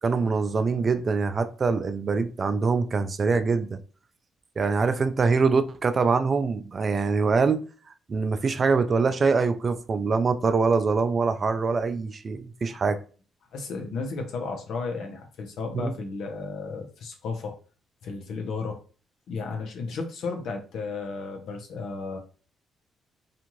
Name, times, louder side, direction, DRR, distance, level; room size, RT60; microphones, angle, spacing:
voice 1, 0.0-3.8 4.6-7.6 8.1-13.0 15.8-15.9, right 4 dB, 40° right, 0.3 m, -24 dB
voice 2, 13.5-17.5 18.0-18.8 19.3-22.2, left 4 dB, 75° left, 0.7 m, -33 dB
2.6 x 2.4 x 3.0 m
cardioid pair, 90°, 0 cm